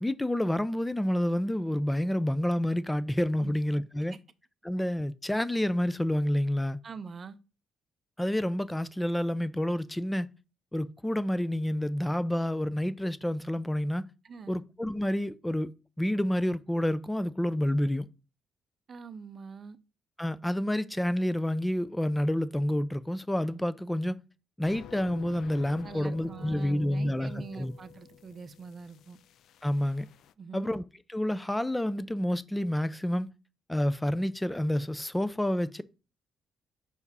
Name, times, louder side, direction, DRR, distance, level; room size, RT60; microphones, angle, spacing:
voice 1, 0.0-4.1 4.6-6.8 8.2-10.3 10.7-14.1 14.5-18.1 20.2-24.2 24.6-27.7 29.6-30.1 30.5-30.8 31.1-33.3 33.7-35.8, left 1 dB, 10° left, 0.5 m, -29 dB
voice 2, 6.8-7.4 14.2-14.6 18.9-19.8 25.8-29.2 30.4-30.7, right 5 dB, 45° right, 0.6 m, -44 dB
Phased Harmonics background noise, 24.6-30.3, left 10 dB, 75° left, 0.3 m, -50 dB
5.4 x 4.9 x 4.1 m
cardioid pair, 90°, 0 cm